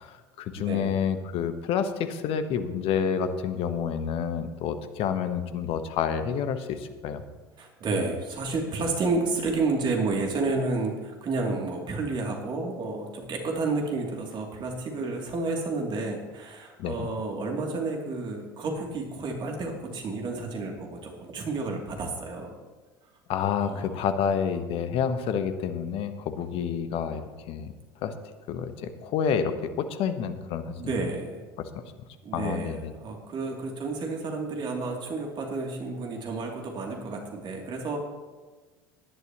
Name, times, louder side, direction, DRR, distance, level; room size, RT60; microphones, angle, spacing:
voice 1, 0.0-7.2 16.8-17.1 23.3-27.7 28.0-28.1 28.5-30.9 31.6-31.7 32.3-32.9, left 7 dB, 55° left, 10 dB, 1.1 m, -29 dB
voice 2, 0.6-1.0 7.6-22.5 23.6-24.0 30.8-31.4 32.2-38.0, right 3 dB, 40° right, 1 dB, 2.8 m, -31 dB
17.5 x 11.0 x 3.0 m, 1.3 s
hypercardioid pair, 70°, 12 cm